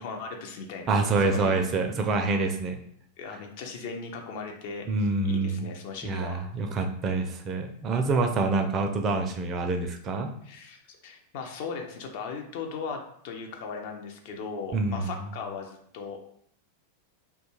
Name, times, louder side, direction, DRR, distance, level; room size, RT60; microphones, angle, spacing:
voice 1, 0.0-1.6 3.2-6.5 10.4-16.3, left 5 dB, 50° left, 3 dB, 0.4 m, -38 dB
voice 2, 0.9-2.8 4.9-5.6 6.0-10.3 14.7-15.1, right 3 dB, 30° right, 5 dB, 0.4 m, -26 dB
2.2 x 2.2 x 3.0 m, 0.67 s
figure-of-eight pair, 90°, 0 cm